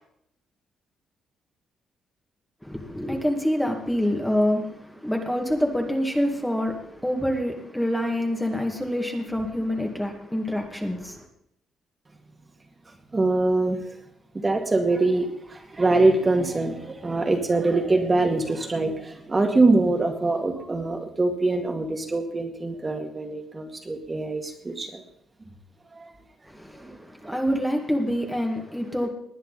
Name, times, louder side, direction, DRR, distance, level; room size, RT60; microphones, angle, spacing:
voice 1, 2.6-11.3 26.5-29.1, equal, 5° left, 2.1 m, -26 dB
voice 2, 13.1-13.8 14.3-25.0 25.9-26.1 26.9-27.3, right 2 dB, 25° right, 2.3 m, -24 dB
20.0 x 9.4 x 4.2 m
cardioid pair, 90°, 0 cm